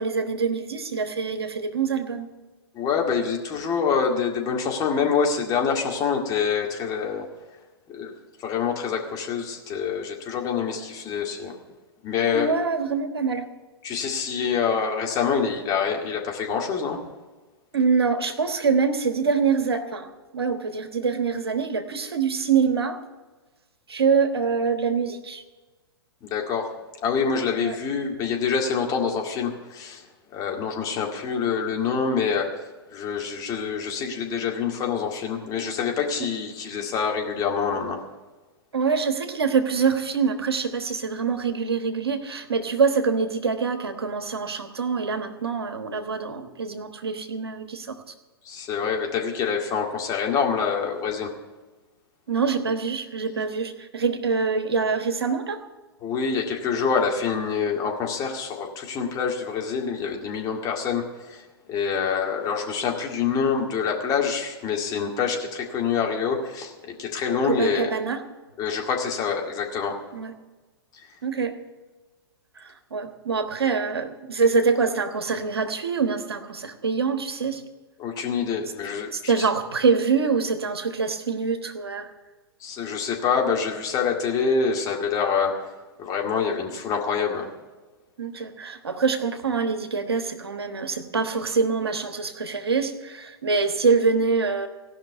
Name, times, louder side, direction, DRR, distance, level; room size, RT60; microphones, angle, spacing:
voice 1, 0.0-2.3 12.3-13.5 17.7-20.1 20.3-23.0 23.9-25.4 27.6-27.8 36.2-36.3 38.7-48.0 52.3-55.6 67.5-68.2 70.1-70.3 71.2-71.6 72.6-77.6 79.1-82.1 88.2-94.7, right 5 dB, 75° right, 7 dB, 1.3 m, -25 dB
voice 2, 2.7-7.3 7.9-8.2 8.4-11.6 12.0-12.5 13.8-17.0 26.2-26.7 27.0-30.0 30.3-32.5 32.9-38.0 48.5-51.3 56.0-67.9 68.6-70.0 78.0-79.5 82.6-85.5 86.0-87.5, left 6 dB, 30° left, 1 dB, 2.0 m, -26 dB
16.5 x 5.9 x 9.3 m, 1.2 s
figure-of-eight pair, 110°, 13 cm